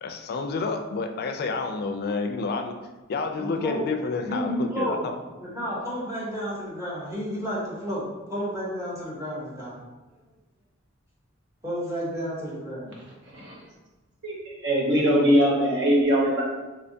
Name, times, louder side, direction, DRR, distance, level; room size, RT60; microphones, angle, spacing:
voice 1, 0.0-2.8 3.1-5.0, left 4 dB, 50° left, 5 dB, 0.3 m, -29 dB
voice 2, 3.4-3.8 4.2-9.7 11.6-13.0, equal, 15° right, -7 dB, 1.0 m, -31 dB
voice 3, 14.6-16.4, equal, 60° right, -4 dB, 1.0 m, -21 dB
3.3 x 3.0 x 2.7 m, 1.1 s
head